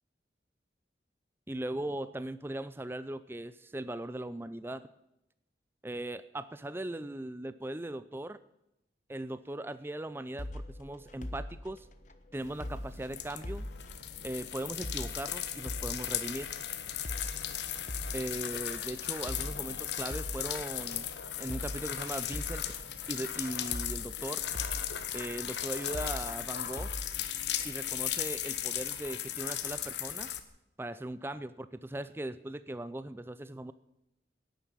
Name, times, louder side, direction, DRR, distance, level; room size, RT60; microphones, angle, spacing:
voice 1, 1.5-4.9 5.8-8.4 9.1-11.9 12.3-13.7 14.2-16.5 18.1-21.1 21.4-22.6 23.1-24.4 25.1-26.9 27.6-30.3 30.8-33.7, right 1 dB, 10° right, 14 dB, 0.4 m, -39 dB
sound 1, 10.4-28.1, left 1 dB, 40° left, 1.1 m, -43 dB
sound 2, 12.4-30.4, left 10 dB, 70° left, 1.1 m, -37 dB
11.0 x 9.3 x 9.8 m, 0.85 s
head